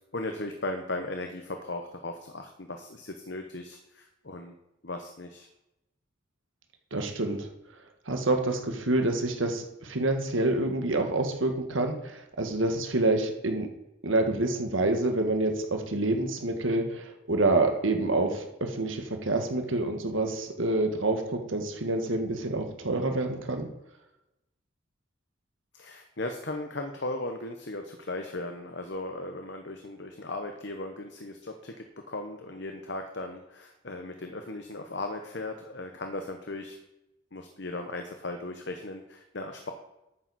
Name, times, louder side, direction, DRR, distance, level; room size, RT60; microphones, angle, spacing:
voice 1, 0.1-4.5 4.8-5.5 25.7-36.8 37.3-39.7, left 2 dB, 60° left, 5 dB, 1.0 m, -37 dB
voice 2, 6.9-7.5 8.1-13.7 14.0-23.7, right 2 dB, 80° right, 5 dB, 1.6 m, -27 dB
12.0 x 9.2 x 4.2 m, 0.91 s
head